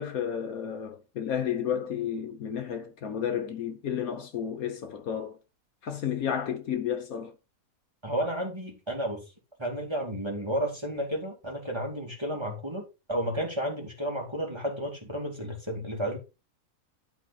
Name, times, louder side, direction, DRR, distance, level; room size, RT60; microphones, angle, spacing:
voice 1, 0.0-5.4 5.8-7.3, left 8 dB, 65° left, 1.3 m, -32 dB
voice 2, 8.0-9.2 9.6-16.2, equal, 15° right, 2.5 m, -32 dB
11.5 x 4.1 x 4.1 m
omnidirectional pair, 1.7 m